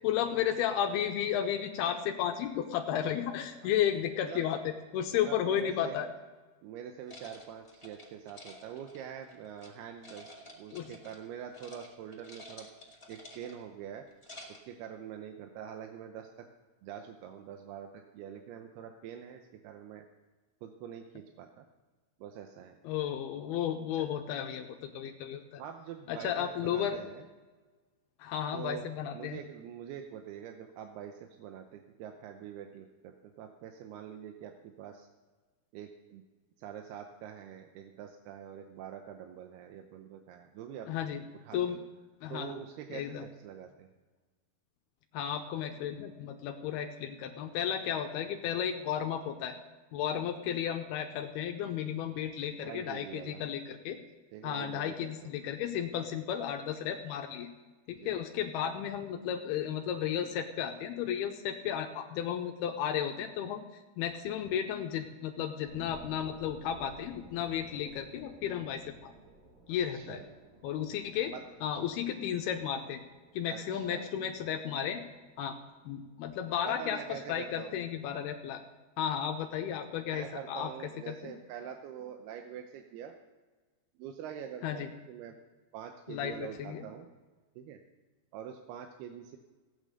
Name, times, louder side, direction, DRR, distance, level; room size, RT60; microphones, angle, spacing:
voice 1, 0.0-6.1 10.7-10.9 22.8-25.6 26.1-27.0 28.2-29.4 40.9-41.2 41.5-41.8 42.2-42.5 42.9-43.3 45.1-49.6 49.9-54.0 54.4-57.5 57.9-69.1 69.7-70.2 70.6-71.3 71.6-73.0 73.3-75.0 75.4-75.6 75.9-78.6 79.0-80.7 81.1-81.3 84.6-84.9 86.1-86.9, left 9 dB, 80° left, 4 dB, 2.7 m, -33 dB
voice 2, 5.1-6.0 6.6-10.3 10.6-12.7 13.1-14.0 14.5-16.3 16.8-20.1 20.6-21.7 22.2-22.7 23.9-24.0 25.0-25.1 25.6-27.2 28.5-28.9 29.1-35.1 35.7-36.2 36.6-40.9 41.5-41.8 42.3-43.9 52.6-53.4 54.3-55.4 58.0-58.1 69.9-70.2 71.3-71.4 73.5-74.1 76.7-77.8 80.1-83.1 84.0-85.4 85.7-87.1 87.6-87.8 88.3-89.4, right 9 dB, 80° right, 4 dB, 2.7 m, -45 dB
sound 1, 7.1-9.7 10.0-11.3 11.5-11.9 12.1-13.7 14.1-14.7, left 1 dB, 15° left, 0.9 m, -51 dB
sound 2, 65.7-76.7 77.1-77.2, right 1 dB, 60° right, 4.3 m, -56 dB
16.5 x 8.8 x 6.6 m, 1.3 s
omnidirectional pair, 4.6 m